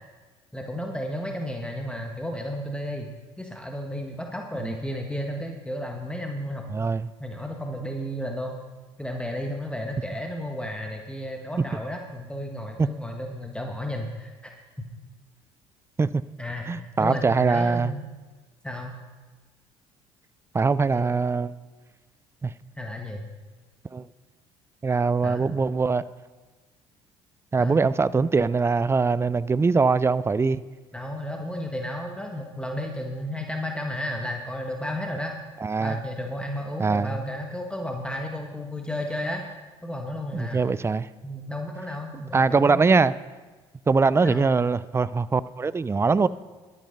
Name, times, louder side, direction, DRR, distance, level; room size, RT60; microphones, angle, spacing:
voice 1, 0.5-3.1 3.4-6.7 7.2-8.6 9.0-14.5 16.4-18.0 18.6-19.0 20.9-21.2 22.8-23.2 25.2-25.5 27.6-27.8 30.9-35.3 35.8-39.4 39.8-40.6 41.2-43.0 44.2-44.5, left 1 dB, 5° left, 1.4 m, -33 dB
voice 2, 6.7-7.1 12.8-12.9 16.0-16.2 16.7-17.9 20.5-21.5 22.4-22.5 23.9-24.1 24.8-26.0 27.5-30.6 35.6-36.0 36.8-37.2 40.3-41.1 42.3-43.1 43.9-46.3, right 4 dB, 15° right, 0.4 m, -22 dB
12.0 x 9.5 x 5.3 m
hypercardioid pair, 55°, 15 cm